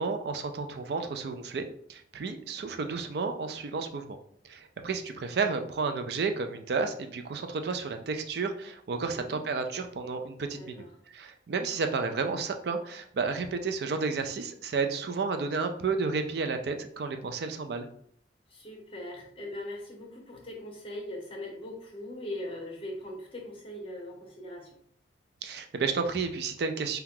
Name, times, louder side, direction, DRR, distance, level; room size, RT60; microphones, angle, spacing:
voice 1, 0.0-4.2 4.4-17.9 25.4-27.0, right 4 dB, 60° right, 6 dB, 0.4 m, -32 dB
voice 2, 9.1-9.4 10.5-10.9 18.5-24.8, left 1 dB, 30° left, 0 dB, 0.8 m, -40 dB
2.8 x 2.3 x 3.6 m, 0.66 s
head